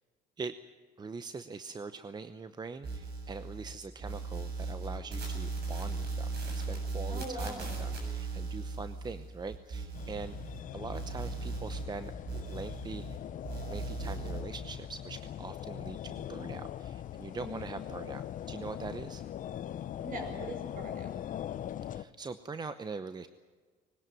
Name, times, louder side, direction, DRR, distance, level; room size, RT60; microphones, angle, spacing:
voice 1, 1.0-10.3 10.7-13.2 13.7-19.2 21.9-23.3, right 4 dB, 25° right, 11 dB, 0.8 m, -43 dB
sound 1, 2.8-3.7 4.0-10.6 10.9-13.2 13.4-14.4, right 3 dB, 75° right, 7.5 m, -37 dB
voice 2, 7.1-7.9 17.4-17.8 20.0-21.2, right 1 dB, 55° right, 4 dB, 6.4 m, -42 dB
sound 2, 9.9-22.0, left 11 dB, 50° left, 0.7 m, -41 dB
20.5 x 18.5 x 9.2 m, 1.5 s
cardioid pair, 110°, 17 cm